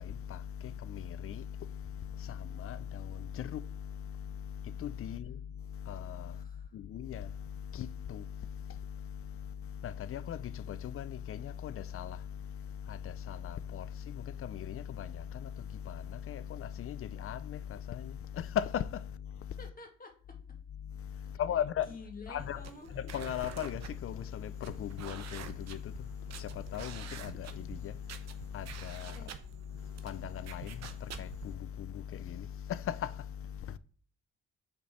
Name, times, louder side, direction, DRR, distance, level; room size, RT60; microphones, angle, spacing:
voice 1, 0.0-19.7 20.8-22.0 22.3-29.3 29.5-33.8, left 9 dB, 50° left, 0.4 m, -39 dB
voice 2, 6.3-6.8 19.6-20.4 21.3-22.9 29.1-29.3, left 3 dB, 30° left, 2.0 m, -50 dB
sound 1, 22.4-31.5, right 7 dB, 60° right, 0.9 m, -48 dB
5.2 x 4.1 x 5.9 m
cardioid pair, 90°, 30 cm